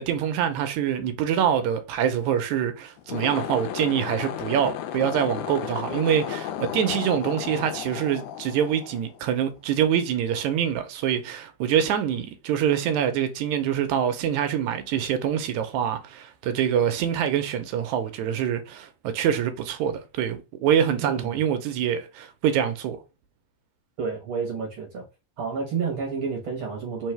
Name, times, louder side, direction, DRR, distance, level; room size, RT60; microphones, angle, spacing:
voice 1, 0.0-23.0, right 9 dB, 80° right, 2.0 m, -25 dB
sound 1, 3.0-9.5, left 11 dB, 90° left, 2.1 m, -34 dB
voice 2, 24.0-25.0 25.4-27.1, right 5 dB, 60° right, 1.4 m, -30 dB
4.6 x 3.4 x 3.2 m
omnidirectional pair, 3.5 m